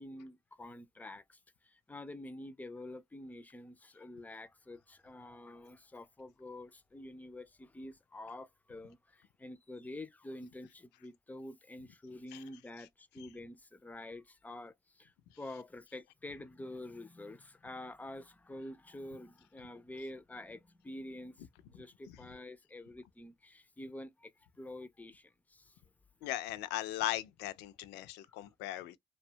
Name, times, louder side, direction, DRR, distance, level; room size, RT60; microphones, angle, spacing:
voice 1, 0.0-25.8 28.3-28.4, left 1 dB, 10° left, 0.3 m, -48 dB
voice 2, 26.2-29.0, left 15 dB, 90° left, 0.4 m, -38 dB
2.7 x 2.1 x 2.7 m
cardioid pair, 110°, 17 cm